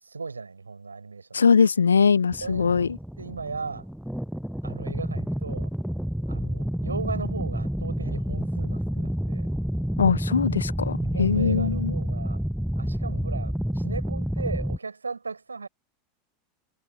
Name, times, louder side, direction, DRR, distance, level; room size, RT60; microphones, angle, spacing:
voice 1, 0.0-1.5 2.4-2.9 3.2-3.8 4.6-5.7 6.3-9.5 10.9-12.4 12.8-15.7, right 4 dB, 80° right, 6.2 m, -37 dB
voice 2, 1.3-3.0 10.0-11.9, left 6 dB, 75° left, 1.1 m, -21 dB
sound 1, 2.3-14.8, equal, ahead, 0.4 m, -29 dB
figure-of-eight pair, 85°, 0 cm